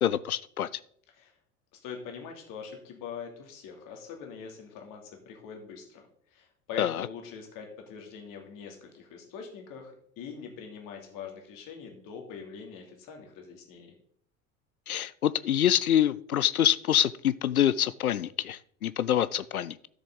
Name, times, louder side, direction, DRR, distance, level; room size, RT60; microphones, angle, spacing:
voice 1, 0.0-0.7 6.8-7.1 14.9-19.8, left 11 dB, 85° left, 18 dB, 0.5 m, -26 dB
voice 2, 1.7-13.9, left 6 dB, 50° left, 2 dB, 2.8 m, -43 dB
12.5 x 6.9 x 3.9 m, 0.64 s
figure-of-eight pair, 70°, 42 cm